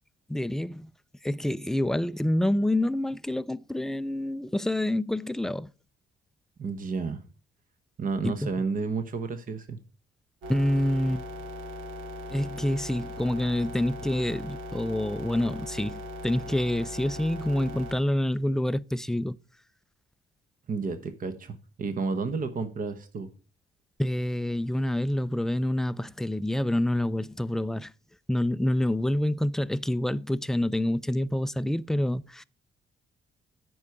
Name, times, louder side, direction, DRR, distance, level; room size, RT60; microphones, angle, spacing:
voice 1, 0.3-0.9 1.2-5.7 8.2-8.5 10.5-11.3 12.3-19.4 24.0-27.9 28.3-32.4, left 1 dB, ahead, 0.3 m, -27 dB
voice 2, 6.6-7.2 8.0-9.8 20.7-23.3, right 4 dB, 45° right, 1.0 m, -31 dB
sound 1, 10.4-17.9, left 1 dB, 90° right, 1.7 m, -39 dB
9.9 x 4.7 x 5.5 m
cardioid pair, 90°, 20 cm